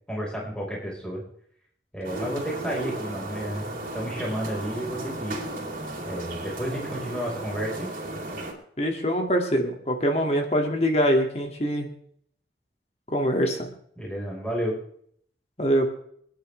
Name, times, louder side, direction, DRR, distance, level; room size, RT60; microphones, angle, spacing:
voice 1, 0.1-1.2 1.9-5.4 6.1-7.9 14.0-14.8, equal, 5° left, -4 dB, 4.8 m, -31 dB
sound 1, 2.0-8.5, right 1 dB, 50° right, 3.7 m, -35 dB
voice 2, 8.8-11.9 13.1-13.7 15.6-15.9, equal, 35° left, 2 dB, 2.3 m, -24 dB
28.0 x 10.5 x 3.4 m, 0.64 s
head